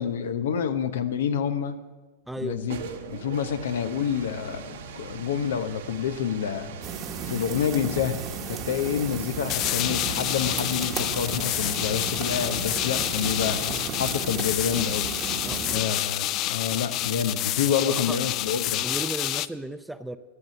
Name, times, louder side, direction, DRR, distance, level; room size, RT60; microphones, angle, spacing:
voice 1, 0.0-1.8 2.4-2.8 3.1-6.8 7.3-8.2 8.5-15.1 15.3-15.4 15.7-18.9, left 8 dB, 80° left, 10 dB, 0.9 m, -28 dB
voice 2, 2.3-2.7 15.4-16.0 17.9-18.2 18.8-20.2, right 1 dB, 5° right, 11 dB, 0.6 m, -35 dB
sound 1, 2.4-19.1, right 6 dB, 80° right, 1.5 m, -43 dB
sound 2, 6.8-15.8, right 6 dB, 30° right, 1.1 m, -35 dB
sound 3, 9.5-19.5, left 14 dB, 45° left, 0.4 m, -28 dB
13.0 x 6.7 x 8.6 m, 1.3 s
hypercardioid pair, 115°, 0 cm